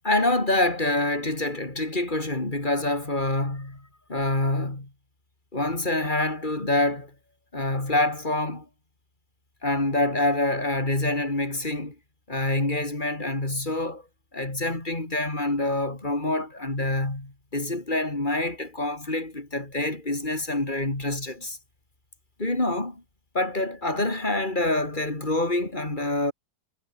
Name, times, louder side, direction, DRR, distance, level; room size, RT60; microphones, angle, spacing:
voice 1, 0.0-4.9 5.5-7.1 7.5-8.7 9.6-12.0 12.3-14.0 14.3-21.6 22.4-23.0 23.3-26.3, left 2 dB, 20° left, 3.9 m, -26 dB
omnidirectional pair, 2.3 m